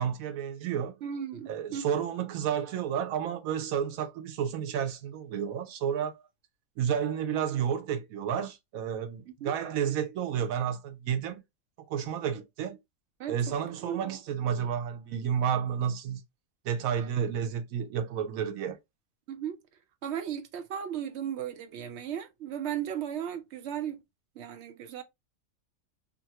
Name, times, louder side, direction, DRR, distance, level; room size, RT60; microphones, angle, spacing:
voice 1, 0.0-1.0 1.5-6.1 6.8-11.4 11.9-12.8 13.3-16.2 16.6-18.8, right 8 dB, 85° right, 1.0 m, -31 dB
voice 2, 1.0-1.9 9.3-9.5 13.2-13.6 13.8-14.2 19.3-19.6 20.0-24.0 24.4-25.0, right 9 dB, 65° right, 0.8 m, -36 dB
2.7 x 2.5 x 2.7 m
omnidirectional pair, 1.4 m